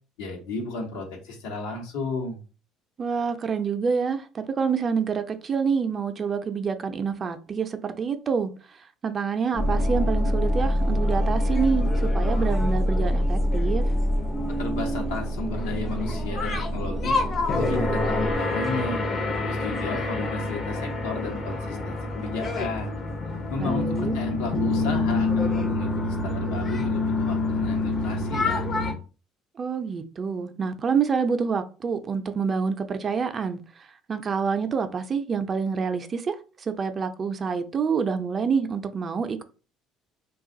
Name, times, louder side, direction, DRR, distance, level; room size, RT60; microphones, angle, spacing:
voice 1, 0.2-2.4 14.6-17.2 17.5-19.0 19.4-22.9 23.5-28.7, left 3 dB, 80° left, 1.0 m, -33 dB
voice 2, 3.0-8.5 9.0-13.8 23.6-24.2 29.6-39.4, right 5 dB, 40° right, 0.5 m, -27 dB
sound 1, 9.5-28.9, left 3 dB, 45° left, 0.7 m, -28 dB
sound 2, 9.6-18.4, equal, 15° left, 0.4 m, -25 dB
2.4 x 2.3 x 3.7 m
hypercardioid pair, 70°, 0 cm